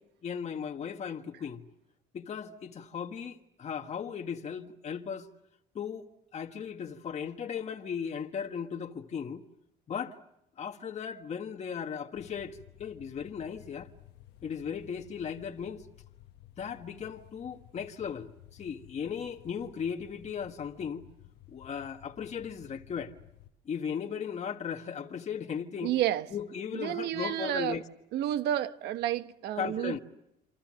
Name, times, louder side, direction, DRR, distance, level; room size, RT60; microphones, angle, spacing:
voice 1, 0.2-1.6 2.1-5.3 5.7-6.1 6.3-9.4 9.9-10.2 10.6-13.9 14.4-15.9 16.6-21.0 21.5-23.1 23.6-25.9 26.3-27.8 29.6-30.0, left 7 dB, 40° left, 1.5 m, -37 dB
sound 1, 12.1-23.5, left 14 dB, 85° left, 1.2 m, -55 dB
voice 2, 25.8-26.3 26.7-27.8 28.1-30.0, right 12 dB, 80° right, 1.3 m, -30 dB
28.5 x 26.0 x 7.5 m
cardioid pair, 110°, 17 cm